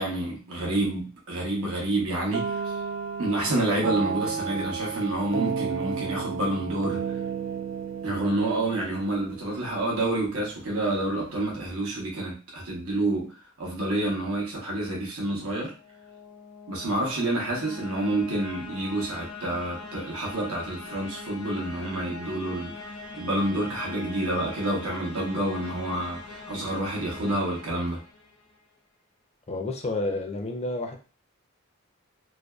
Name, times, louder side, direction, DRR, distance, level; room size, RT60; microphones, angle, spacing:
voice 1, 0.0-2.6 3.2-7.0 8.0-13.3 13.6-15.7 16.7-22.7 23.2-28.0, right 2 dB, 80° right, -2 dB, 0.8 m, -28 dB
sound 1, 2.3-10.0, right 5 dB, 55° right, 0.3 m, -33 dB
sound 2, 15.6-28.6, left 3 dB, 85° left, 0.9 m, -42 dB
voice 2, 29.5-31.0, left 2 dB, 30° left, 3 dB, 0.4 m, -30 dB
2.5 x 2.2 x 2.2 m, 0.35 s
head